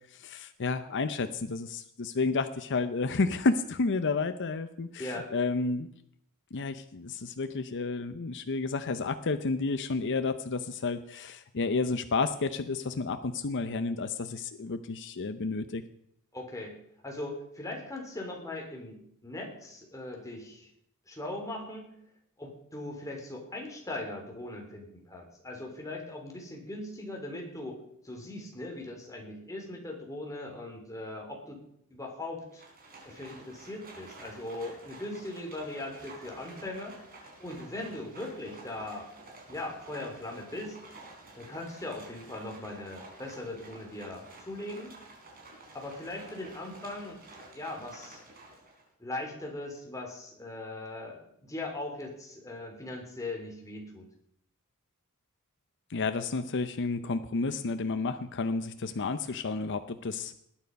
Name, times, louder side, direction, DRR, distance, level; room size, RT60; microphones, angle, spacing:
voice 1, 0.1-5.9 6.5-15.8 55.9-60.3, left 3 dB, 55° left, 9 dB, 0.7 m, -31 dB
voice 2, 5.0-5.3 16.3-16.7 17.0-20.7 21.1-21.9 22.4-27.8 28.0-31.6 31.9-32.6 33.0-37.0 37.4-39.1 39.5-40.8 41.3-44.9 45.7-47.2 47.5-48.2 49.0-54.0, left 2 dB, 15° left, 1 dB, 3.5 m, -39 dB
Livestock farm animals working animals, 32.5-48.9, right 2 dB, 40° right, 4.4 m, -51 dB
19.0 x 9.3 x 5.3 m, 0.72 s
head